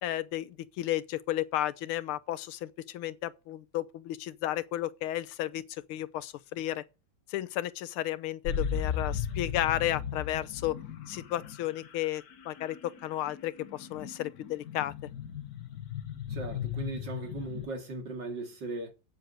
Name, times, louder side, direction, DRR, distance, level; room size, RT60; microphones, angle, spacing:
voice 1, 0.0-6.8 7.3-10.8 11.1-14.9, left 14 dB, 90° left, 1.6 m, -33 dB
sound 1, 8.4-17.7, left 7 dB, 50° left, 1.5 m, -36 dB
voice 2, 16.3-18.9, right 2 dB, 55° right, 3.1 m, -38 dB
8.9 x 7.7 x 7.9 m
omnidirectional pair, 2.3 m